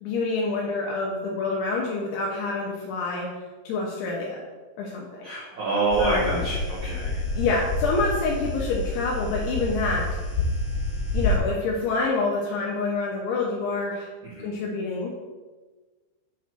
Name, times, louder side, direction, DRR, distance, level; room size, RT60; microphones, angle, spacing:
voice 1, 0.0-3.3 3.7-4.4 4.8-5.3 6.0-6.4 7.4-10.1 11.1-14.1 14.4-15.1, left 3 dB, 80° left, -2 dB, 3.0 m, -27 dB
voice 2, 5.2-7.2 14.3-14.5, right 2 dB, 75° right, -9 dB, 1.7 m, -26 dB
sound 1, 5.9-11.4, left 2 dB, 60° left, 3.6 m, -28 dB
8.2 x 3.1 x 6.0 m, 1.3 s
omnidirectional pair, 5.7 m